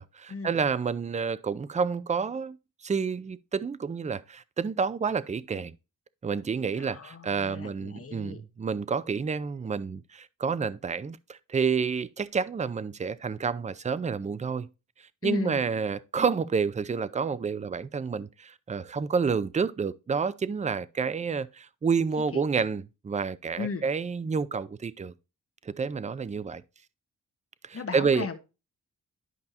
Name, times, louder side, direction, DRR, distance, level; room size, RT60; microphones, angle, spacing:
voice 1, 0.0-2.6 2.8-5.7 6.2-14.7 15.2-25.1 25.6-26.6 27.6-28.3, right 5 dB, 20° right, 0.4 m, -29 dB
voice 2, 6.8-8.4 15.2-15.6 22.3-22.4 23.6-23.8 27.7-28.4, left 5 dB, 45° left, 1.2 m, -36 dB
11.0 x 5.3 x 2.8 m
wide cardioid pair, 100°, 33 cm